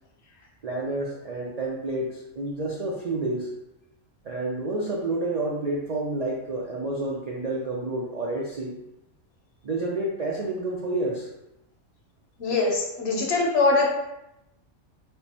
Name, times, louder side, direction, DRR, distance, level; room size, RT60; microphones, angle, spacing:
voice 1, 0.6-3.5 4.2-8.8 9.6-11.3, right 2 dB, 85° right, -3 dB, 0.3 m, -29 dB
voice 2, 12.4-13.9, left 3 dB, 55° left, 0 dB, 1.1 m, -22 dB
3.5 x 2.5 x 4.1 m, 0.90 s
omnidirectional pair, 1.3 m